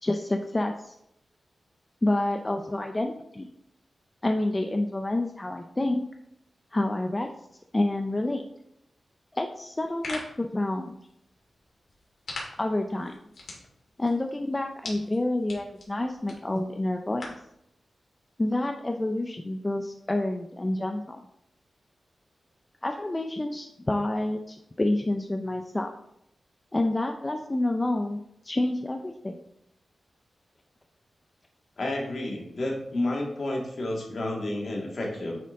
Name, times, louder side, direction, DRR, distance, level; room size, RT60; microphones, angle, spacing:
voice 1, 0.0-0.9 2.0-3.5 4.2-6.0 6.7-7.3 7.7-8.4 9.3-11.0 12.6-13.2 14.0-17.3 18.4-21.2 22.8-25.9 26.7-28.2 28.4-29.4, left 1 dB, 15° left, 4 dB, 0.4 m, -28 dB
sound 1, 9.7-17.5, left 2 dB, 75° left, 2.3 m, -44 dB
voice 2, 31.8-35.4, left 1 dB, 50° left, -1 dB, 1.8 m, -30 dB
9.1 x 4.4 x 3.6 m, 0.80 s
wide cardioid pair, 165°, 0 cm